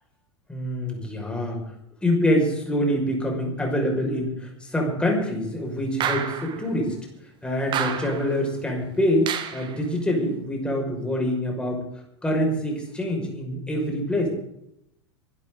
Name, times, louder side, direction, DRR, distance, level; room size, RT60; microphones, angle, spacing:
voice 1, 0.5-1.6 2.0-7.0 7.4-11.8 12.2-14.3, equal, 5° left, 0 dB, 6.0 m, -25 dB
sound 1, 6.0-6.6 7.7-8.4 9.3-9.8, right 8 dB, 30° right, 1.7 m, -29 dB
24.5 x 12.5 x 4.0 m, 0.77 s
figure-of-eight pair, 90°, 15 cm